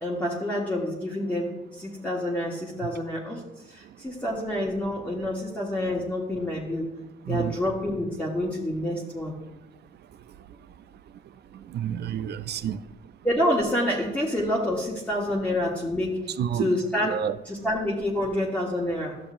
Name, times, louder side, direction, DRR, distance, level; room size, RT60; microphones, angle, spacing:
voice 1, 0.0-3.4 3.7-6.9 7.3-9.3 13.2-17.1 17.4-19.2, left 1 dB, 10° left, 1.4 m, -28 dB
voice 2, 11.7-12.8 16.4-17.4, right 9 dB, 55° right, 0.4 m, -29 dB
12.5 x 7.0 x 2.5 m
cardioid pair, 90°, 20 cm